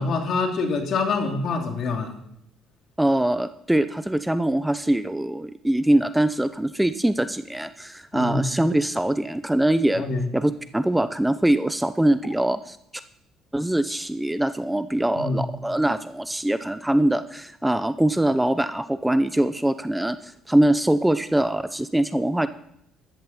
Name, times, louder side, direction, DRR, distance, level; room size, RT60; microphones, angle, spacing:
voice 1, 0.0-2.1 8.1-8.4 9.9-10.3 15.2-15.4, left 3 dB, 55° left, 3 dB, 2.7 m, -25 dB
voice 2, 3.0-10.1 10.3-12.8 13.5-22.5, right 1 dB, 5° right, 12 dB, 0.6 m, -23 dB
13.5 x 12.5 x 4.3 m, 0.74 s
cardioid pair, 100°, 0 cm